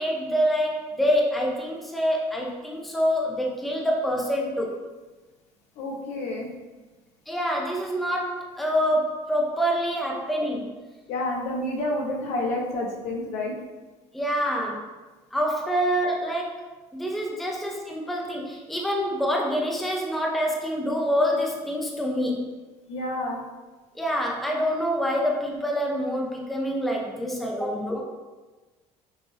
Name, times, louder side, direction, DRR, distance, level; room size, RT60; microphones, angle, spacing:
voice 1, 0.0-4.8 7.3-10.7 14.1-14.8 15.3-16.6 16.9-22.4 24.0-28.0, equal, ahead, -1 dB, 0.5 m, -26 dB
voice 2, 5.8-6.5 11.1-13.6 22.9-23.4, left 1 dB, 65° left, -1 dB, 1.0 m, -29 dB
5.9 x 2.5 x 3.2 m, 1.2 s
cardioid pair, 155°, 12 cm